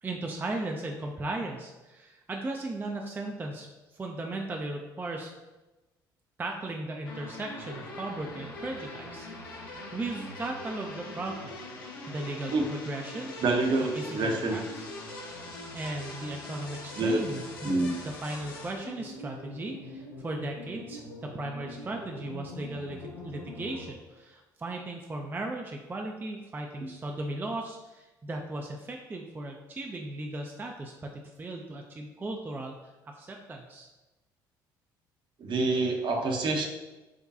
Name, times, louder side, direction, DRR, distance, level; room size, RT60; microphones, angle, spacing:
voice 1, 0.0-5.3 6.4-11.5 12.1-13.3 13.9-14.9 15.7-17.7 18.0-31.1 31.4-32.7 33.1-33.9, right 2 dB, 20° right, 2 dB, 0.4 m, -37 dB
sound 1, 7.0-23.9, left 2 dB, 75° left, 0.6 m, -42 dB
voice 2, 13.4-14.6 16.9-17.3 17.6-17.9 35.4-36.6, right 2 dB, 45° right, 2 dB, 0.7 m, -27 dB
4.8 x 2.2 x 2.7 m, 1.1 s
figure-of-eight pair, 55°, 11 cm